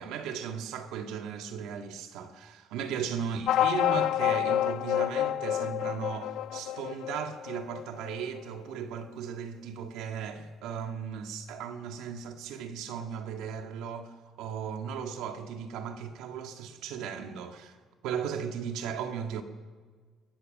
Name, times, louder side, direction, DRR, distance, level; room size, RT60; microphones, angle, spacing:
voice 1, 0.0-14.1 14.4-17.8 18.0-19.4, right 7 dB, 90° right, 1.9 m, -36 dB
sound 1, 3.5-8.4, left 12 dB, 65° left, 0.5 m, -28 dB
22.5 x 20.0 x 6.6 m
cardioid pair, 155°, 0 cm